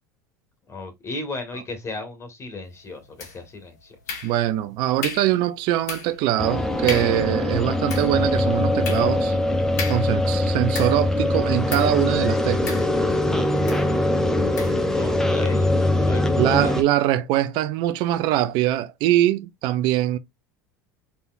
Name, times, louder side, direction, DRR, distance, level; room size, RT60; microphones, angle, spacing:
voice 1, 0.7-4.2 14.9-16.8, left 3 dB, 30° left, 1.8 m, -35 dB
sound 1, 3.2-3.6 4.1-4.6 5.0-5.4 5.9-6.2 6.5-6.6 6.9-7.3 7.7-11.2 11.7-12.0 12.7-13.2 13.7-13.9 14.6-14.8, left 5 dB, 80° left, 2.0 m, -34 dB
voice 2, 4.2-9.4 9.9-12.8 16.4-20.2, right 13 dB, 60° right, 0.6 m, -22 dB
sound 2, 6.4-16.8, left 1 dB, 5° left, 0.8 m, -22 dB
4.1 x 3.5 x 2.5 m
hypercardioid pair, 80°, 9 cm